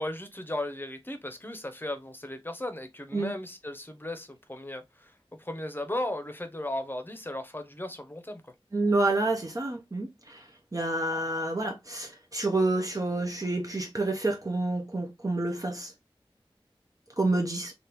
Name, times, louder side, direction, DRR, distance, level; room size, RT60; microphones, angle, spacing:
voice 1, 0.0-8.4, left 1 dB, 20° left, 0.7 m, -36 dB
voice 2, 8.7-10.4 10.7-15.9 17.2-17.7, right 2 dB, 40° right, 0.6 m, -28 dB
3.5 x 2.4 x 2.9 m
wide cardioid pair, 55°, 10 cm